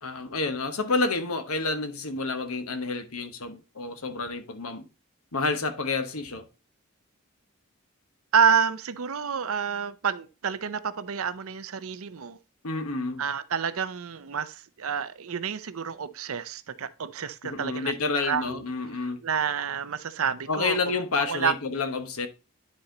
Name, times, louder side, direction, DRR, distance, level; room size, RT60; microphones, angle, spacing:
voice 1, 0.0-4.9 5.3-6.4 12.6-13.2 17.4-19.2 20.5-22.3, left 3 dB, 85° left, 1.1 m, -29 dB
voice 2, 8.3-12.4 13.2-17.9 18.2-18.6 19.2-20.8 21.2-21.5, right 6 dB, 80° right, 0.6 m, -28 dB
9.8 x 4.2 x 3.8 m
head